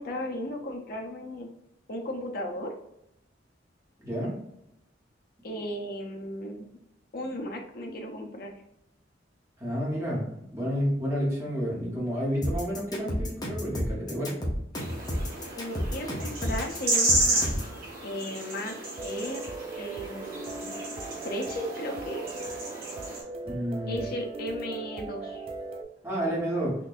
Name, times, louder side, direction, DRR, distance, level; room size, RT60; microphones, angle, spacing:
voice 1, 0.0-1.5 1.9-2.7 5.4-6.7 7.1-8.5 15.6-17.5 18.0-18.7 19.0-19.4 19.8-20.7 21.2-22.2 23.8-25.5, left 1 dB, 55° left, 1 dB, 0.6 m, -35 dB
voice 2, 4.0-4.3 9.6-10.2 10.5-14.3 23.4-24.1 26.0-26.7, equal, 15° right, -5 dB, 1.3 m, -30 dB
sound 1, 12.4-17.7, equal, 20° left, 0.8 m, -31 dB
sound 2, 14.7-23.2, right 2 dB, 55° right, 1.4 m, -32 dB
sound 3, 19.0-25.8, right 3 dB, 30° right, 0.3 m, -39 dB
3.8 x 2.6 x 2.6 m, 0.81 s
head